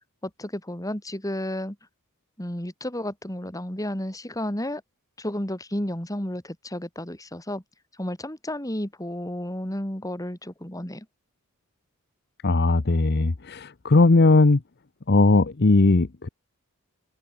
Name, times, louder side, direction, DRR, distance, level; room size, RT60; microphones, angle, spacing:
voice 1, 0.2-1.8 2.4-4.8 5.2-7.6 8.0-11.0, left 1 dB, 15° left, 3.3 m, -32 dB
voice 2, 12.4-14.6 15.1-16.3, left 3 dB, 50° left, 0.8 m, -18 dB
open air
head